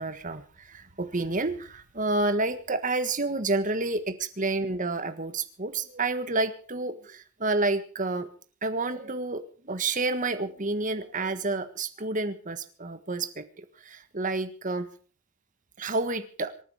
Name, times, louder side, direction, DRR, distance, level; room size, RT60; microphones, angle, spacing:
voice 1, 0.0-8.3 8.6-14.9 15.8-16.5, right 2 dB, 35° right, 10 dB, 1.5 m, -29 dB
26.0 x 9.8 x 5.0 m, 0.42 s
head